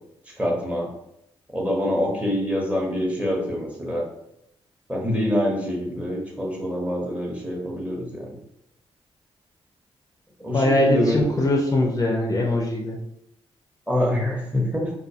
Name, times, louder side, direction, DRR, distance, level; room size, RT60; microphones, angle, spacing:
voice 1, 0.4-0.9 1.5-4.0 4.9-8.4 10.4-11.2 13.9-14.9, left 1 dB, 10° right, -2 dB, 0.7 m, -25 dB
voice 2, 10.5-13.0, left 1 dB, 35° left, 0 dB, 0.4 m, -21 dB
2.3 x 2.1 x 2.6 m, 0.79 s
cardioid pair, 80°, 11 cm